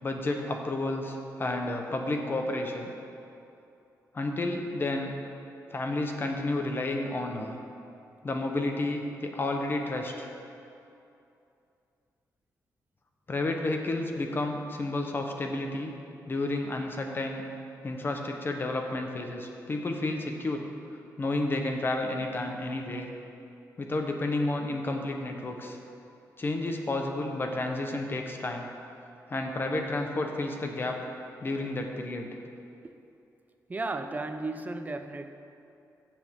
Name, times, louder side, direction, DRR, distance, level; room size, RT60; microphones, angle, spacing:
voice 1, 0.0-2.9 4.1-5.1 5.7-7.6 8.2-10.3 13.3-15.9 16.3-17.4 17.8-20.7 21.2-23.1 23.8-25.8 26.4-28.7 29.3-31.0 31.4-32.3, left 2 dB, 35° left, 3 dB, 1.1 m, -31 dB
voice 2, 33.7-35.3, right 2 dB, 25° right, 8 dB, 0.6 m, -34 dB
15.0 x 7.4 x 3.8 m, 2.7 s
cardioid pair, 105°, 6 cm